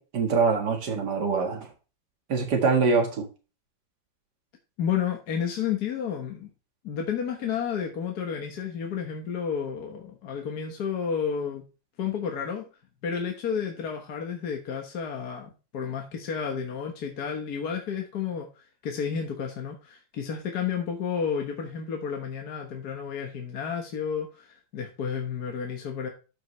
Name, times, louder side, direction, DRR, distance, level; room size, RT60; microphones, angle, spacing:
voice 1, 0.0-1.7 2.3-3.3, right 4 dB, 80° right, 3 dB, 2.3 m, -24 dB
voice 2, 4.8-6.5 6.8-11.6 12.0-12.7 13.0-26.1, left 7 dB, 70° left, 2 dB, 1.8 m, -31 dB
13.0 x 5.3 x 3.1 m, 0.32 s
omnidirectional pair, 1.8 m